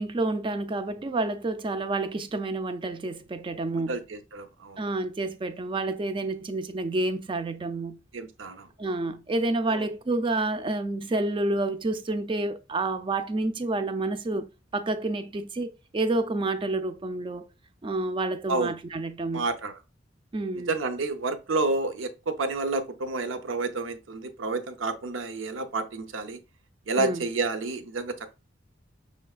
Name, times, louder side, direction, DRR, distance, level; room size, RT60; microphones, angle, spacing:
voice 1, 0.0-4.0 4.8-8.0 8.8-14.5 14.7-17.5 17.8-19.5 20.3-20.7 27.0-27.3, right 2 dB, 25° right, 0.4 m, -29 dB
voice 2, 3.9-4.8 8.1-8.7 9.7-9.9 18.5-18.8 19.3-19.8 20.7-26.4 26.9-28.3, right 3 dB, 80° right, 0.6 m, -30 dB
5.5 x 3.2 x 2.3 m
head